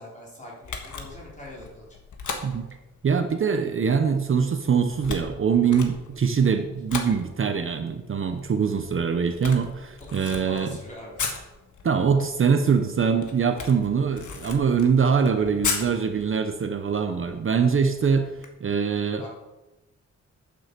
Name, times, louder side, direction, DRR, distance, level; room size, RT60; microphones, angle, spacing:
voice 1, 0.0-1.9 10.1-11.3 19.2-19.3, left 1 dB, 25° left, -5 dB, 3.8 m, -42 dB
Camera, 0.6-18.5, left 5 dB, 80° left, 1.6 m, -38 dB
voice 2, 3.0-10.8 11.8-18.3 18.6-19.3, right 6 dB, 45° right, 6 dB, 0.7 m, -23 dB
9.2 x 7.6 x 6.7 m, 1.1 s
wide cardioid pair, 175°, 30 cm